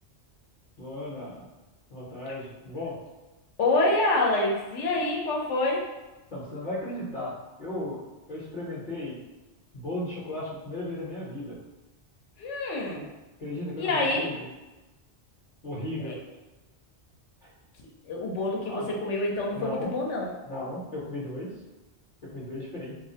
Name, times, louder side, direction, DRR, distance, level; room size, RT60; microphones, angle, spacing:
voice 1, 0.8-1.5 1.9-3.0 6.3-8.0 8.3-9.2 9.7-11.6 13.4-14.4 15.6-16.2 17.4-17.5 18.5-18.9 19.5-19.9 20.5-21.5 22.2-22.9, left 1 dB, 50° left, -8 dB, 0.7 m, -35 dB
voice 2, 3.6-5.9 12.4-13.1 13.8-14.3 16.0-16.1 18.1-20.3, left 2 dB, 85° left, -2 dB, 0.9 m, -26 dB
2.4 x 2.0 x 2.6 m, 1.1 s
omnidirectional pair, 1.2 m